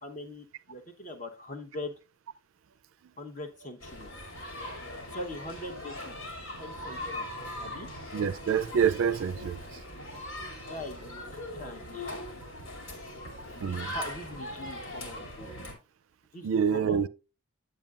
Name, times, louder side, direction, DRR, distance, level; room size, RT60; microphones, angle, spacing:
voice 1, 0.0-1.9 3.2-4.1 5.1-6.1 6.6-7.3 7.6-7.9 10.7-12.3 13.5-15.5 16.3-17.1, left 1 dB, 35° left, 0.9 m, -42 dB
sound 1, 3.8-15.7, left 1 dB, 75° left, 2.5 m, -40 dB
voice 2, 8.1-9.6 13.6-13.9 16.4-17.1, right 7 dB, 70° right, 0.4 m, -26 dB
8.9 x 7.6 x 2.4 m
head